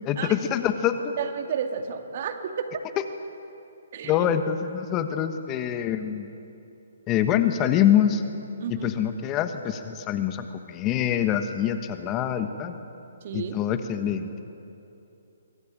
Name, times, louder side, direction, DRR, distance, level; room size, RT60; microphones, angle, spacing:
voice 1, 0.0-1.1 4.0-6.3 7.1-8.2 8.7-12.8 13.3-14.3, left 10 dB, 25° left, 8 dB, 1.3 m, -25 dB
voice 2, 1.2-2.7 3.9-4.3 8.6-8.9 13.2-13.5, right 7 dB, 50° right, 6 dB, 2.3 m, -31 dB
24.5 x 21.0 x 9.0 m, 2.8 s
hypercardioid pair, 145°, 0 cm